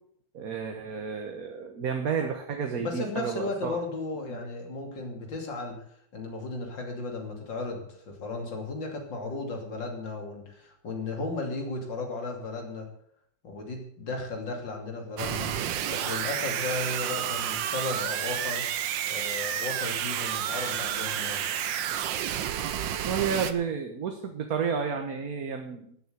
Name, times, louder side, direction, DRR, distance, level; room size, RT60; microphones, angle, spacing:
voice 1, 0.3-3.8 4.3-4.4 22.9-26.1, right 6 dB, 55° right, 4 dB, 1.6 m, -31 dB
voice 2, 2.8-5.8 6.1-12.9 13.4-15.5 15.9-18.6 19.1-21.4, left 3 dB, 75° left, 2 dB, 3.4 m, -35 dB
sound 1, 15.2-23.5, right 10 dB, 75° right, 1.5 m, -30 dB
13.0 x 8.0 x 8.0 m, 0.67 s
omnidirectional pair, 2.0 m